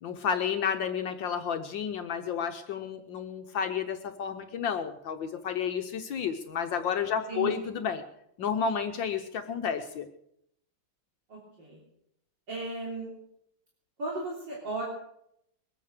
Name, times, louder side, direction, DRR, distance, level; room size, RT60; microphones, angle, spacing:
voice 1, 0.0-8.0 8.4-10.1, left 7 dB, 70° left, 6 dB, 1.6 m, -31 dB
voice 2, 7.3-7.7 11.3-11.8 12.5-13.1 14.0-14.8, right 3 dB, 60° right, -4 dB, 4.0 m, -35 dB
22.0 x 9.2 x 6.5 m, 0.76 s
omnidirectional pair, 2.2 m